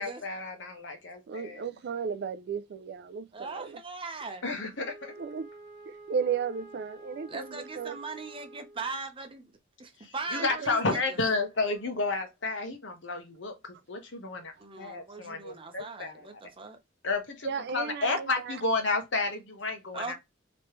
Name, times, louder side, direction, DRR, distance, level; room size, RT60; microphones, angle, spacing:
voice 1, 0.0-1.6 4.4-5.1 10.0-16.4 17.0-20.1, left 3 dB, 65° left, 1.1 m, -32 dB
voice 2, 1.3-3.8 5.2-5.5 5.9-8.0 10.4-10.8 17.4-18.6, right 6 dB, 55° right, 0.3 m, -34 dB
voice 3, 3.3-4.5 7.3-9.5 9.8-11.2 14.6-16.8 19.9-20.1, right 4 dB, 25° right, 0.8 m, -39 dB
Wind instrument woodwind instrument, 4.8-9.0, right 2 dB, 45° left, 1.0 m, -49 dB
3.2 x 3.0 x 3.0 m
head